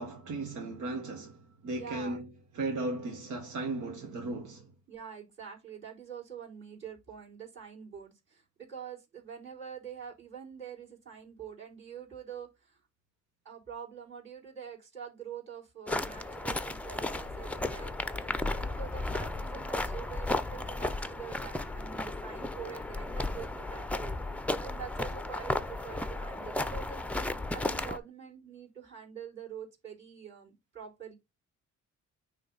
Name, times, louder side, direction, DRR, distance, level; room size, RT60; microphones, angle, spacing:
voice 1, 0.0-2.3 2.5-4.7, right 2 dB, 80° right, 1.3 m, -36 dB
voice 2, 1.7-2.2 4.9-12.8 13.4-17.9 18.5-24.2 24.6-27.0 27.5-31.1, right 8 dB, 40° right, 4.1 m, -45 dB
sound 1, 15.9-28.0, left 2 dB, 5° left, 0.6 m, -34 dB
9.6 x 3.2 x 3.9 m
cardioid pair, 90°, 30 cm